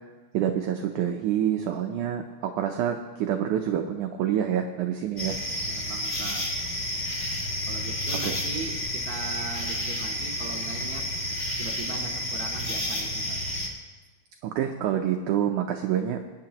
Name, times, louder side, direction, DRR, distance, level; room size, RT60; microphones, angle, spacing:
voice 1, 0.3-5.4 8.2-8.4 14.4-16.2, right 10 dB, 85° right, 4 dB, 1.7 m, -27 dB
voice 2, 5.0-6.6 7.7-11.0 11.6-13.4, right 5 dB, 65° right, 0 dB, 1.9 m, -39 dB
sound 1, 5.2-13.7, left 1 dB, 70° left, 0.6 m, -30 dB
23.0 x 10.5 x 2.9 m, 1.3 s
omnidirectional pair, 4.4 m